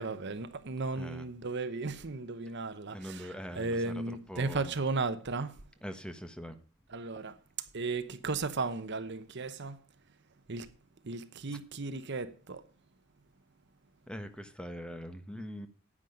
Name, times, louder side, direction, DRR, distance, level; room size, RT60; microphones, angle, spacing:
voice 1, 0.0-5.6 6.9-9.8 10.5-10.7 11.0-12.6, right 3 dB, 55° right, 0.9 m, -35 dB
voice 2, 2.9-3.9 4.3-4.7 5.8-6.6 14.1-15.7, equal, 5° left, 1.3 m, -42 dB
10.0 x 9.4 x 5.1 m
head